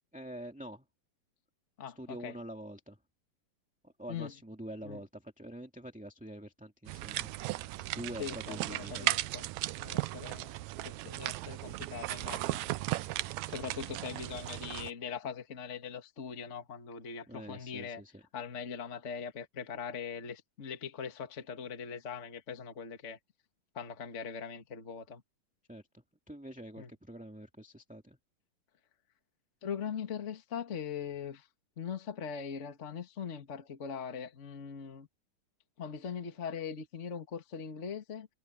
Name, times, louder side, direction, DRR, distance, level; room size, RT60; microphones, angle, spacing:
voice 1, 0.1-0.9 1.9-3.0 3.8-7.3 7.6-9.1 17.3-18.2 25.7-28.2, right 1 dB, 5° right, 1.3 m, -46 dB
voice 2, 1.8-2.3 4.1-4.3 4.8-5.0 8.2-9.5 9.8-10.6 10.8-12.6 13.5-18.0 18.3-23.2 23.7-25.2 26.8-26.9 29.6-31.5 31.8-35.1 35.8-38.3, left 7 dB, 30° left, 1.7 m, -41 dB
sound 1, 6.9-14.9, right 17 dB, 80° right, 1.7 m, -36 dB
omnidirectional pair, 3.7 m